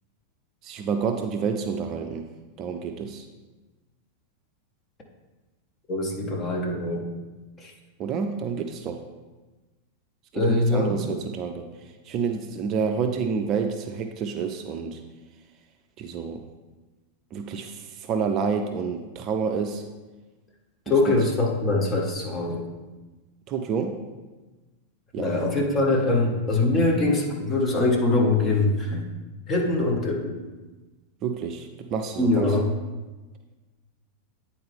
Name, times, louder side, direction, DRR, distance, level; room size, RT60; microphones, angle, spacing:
voice 1, 0.6-2.3 2.6-3.2 8.0-9.0 10.3-15.0 16.0-16.4 17.3-19.8 20.9-21.2 23.5-24.0 25.1-25.4 31.2-32.5, right 6 dB, 35° right, 5 dB, 0.5 m, -29 dB
voice 2, 5.9-7.0 7.6-7.7 10.3-11.2 20.9-22.6 25.2-29.1 29.5-30.4 32.2-32.7, left 2 dB, 25° left, 0 dB, 1.2 m, -23 dB
9.5 x 4.3 x 3.5 m, 1.2 s
figure-of-eight pair, 90°, 0 cm